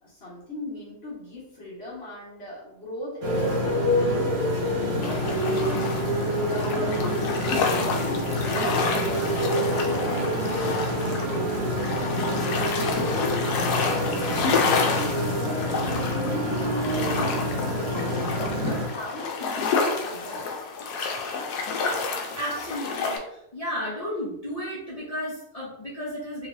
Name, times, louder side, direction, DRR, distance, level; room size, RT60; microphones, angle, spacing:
voice 1, 0.0-5.9 6.4-7.4 7.9-8.3 8.6-12.3 12.6-18.3 18.6-20.5, left 1 dB, 40° left, -7 dB, 1.6 m, -40 dB
Motorcycle, 3.2-18.9, equal, 55° right, 1.2 m, -26 dB
sound 1, 5.0-23.2, left 4 dB, 85° left, 1.1 m, -29 dB
voice 2, 22.3-26.5, equal, 65° left, -8 dB, 0.3 m, -33 dB
3.2 x 3.0 x 2.6 m, 0.85 s
omnidirectional pair, 1.6 m